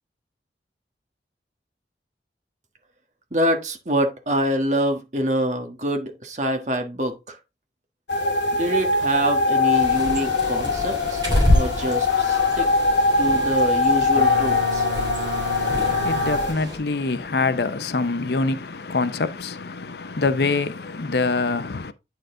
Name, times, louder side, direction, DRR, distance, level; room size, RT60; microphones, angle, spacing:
voice 1, 3.3-7.4 8.5-11.2 11.5-12.7 13.2-14.8, equal, 40° right, 1.5 m, -25 dB
sound 1, 8.1-16.5, left 3 dB, 90° left, 1.1 m, -22 dB
Bird, 9.7-16.8, left 1 dB, 25° right, 3.0 m, -27 dB
Boat Water vehicle, 14.1-16.8, equal, 55° right, 2.3 m, -31 dB
voice 2, 15.2-21.9, left 3 dB, 65° left, 0.6 m, -25 dB
9.1 x 4.5 x 3.7 m
head